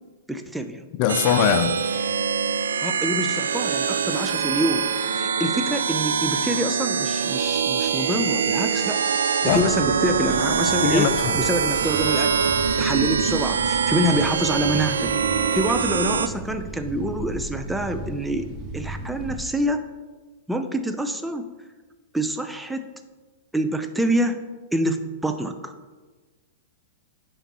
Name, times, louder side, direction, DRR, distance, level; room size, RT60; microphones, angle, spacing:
voice 1, 0.3-0.8 2.8-4.9 5.1-9.1 9.4-15.1 15.5-18.5 18.7-19.9 20.5-21.5 22.1-22.9 23.5-24.4 24.7-25.7, right 1 dB, 5° right, 0.5 m, -26 dB
voice 2, 1.0-1.8 9.4-9.7 10.8-11.3, left 10 dB, 45° left, 0.4 m, -21 dB
sound 1, 1.1-16.3, right 6 dB, 85° right, 0.3 m, -24 dB
sound 2, 9.5-19.4, right 2 dB, 30° right, 0.9 m, -36 dB
10.0 x 3.4 x 3.0 m
hypercardioid pair, 115°, 0 cm